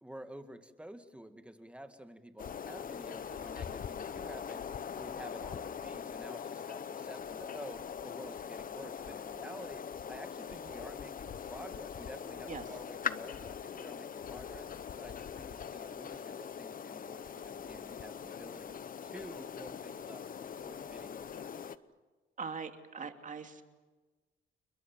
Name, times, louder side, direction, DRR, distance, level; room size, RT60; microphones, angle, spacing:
voice 1, 0.0-4.6 4.9-14.7 15.0-18.7 19.0-20.2 20.6-21.5, right 1 dB, 5° right, 8 dB, 2.0 m, -50 dB
sound 1, 2.4-21.8, left 7 dB, 45° left, 0.9 m, -42 dB
voice 2, 12.5-12.8 22.4-23.6, right 5 dB, 40° right, 6 dB, 2.6 m, -42 dB
29.5 x 21.5 x 7.5 m, 1.3 s
cardioid pair, 90°, 20 cm